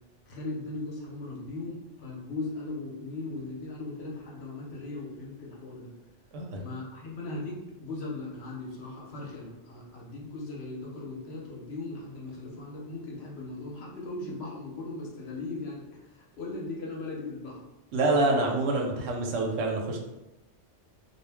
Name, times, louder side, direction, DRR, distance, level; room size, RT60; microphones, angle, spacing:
voice 1, 0.3-5.9 6.5-17.7, left 2 dB, 65° left, -2 dB, 0.8 m, -38 dB
voice 2, 6.3-6.6 17.9-20.0, right 2 dB, 85° right, 1 dB, 0.9 m, -26 dB
2.4 x 2.0 x 3.3 m, 0.96 s
omnidirectional pair, 1.3 m